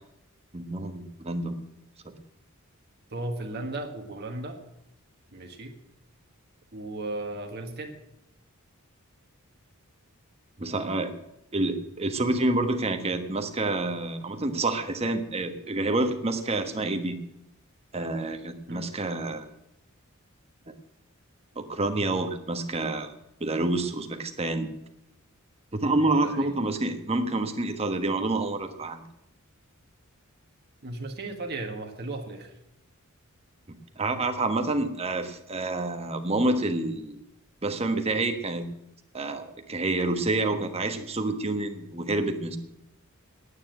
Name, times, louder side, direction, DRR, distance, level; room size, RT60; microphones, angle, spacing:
voice 1, 0.5-1.6 2.0-2.2 10.6-11.1 11.5-17.2 17.9-19.5 20.7-20.8 21.5-23.1 23.4-24.7 25.7-29.0 33.7-37.2 37.6-38.7 39.1-42.6, right 2 dB, 30° right, 6 dB, 1.2 m, -28 dB
voice 2, 3.1-4.6 5.3-5.7 6.7-8.0 18.7-18.9 26.2-26.5 30.8-32.5 40.6-40.7, right 2 dB, 50° right, 3 dB, 1.5 m, -35 dB
9.7 x 8.8 x 8.9 m, 0.82 s
head